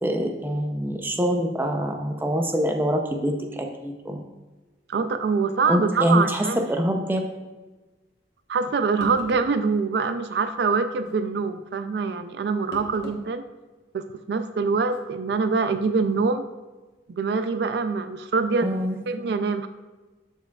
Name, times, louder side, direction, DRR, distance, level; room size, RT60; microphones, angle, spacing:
voice 1, 0.0-4.2 5.7-7.2 18.6-19.0, equal, 10° right, 3 dB, 0.5 m, -25 dB
voice 2, 4.9-6.7 8.5-13.4 13.9-16.5 17.1-18.7 19.1-19.7, right 4 dB, 65° right, 10 dB, 0.4 m, -24 dB
sound 1, 8.6-8.7 9.0-9.6 11.0-11.2 12.7-13.2 13.6-13.7 14.8-15.0, left 1 dB, 70° left, 1.2 m, -40 dB
11.5 x 4.5 x 2.3 m, 1.2 s
head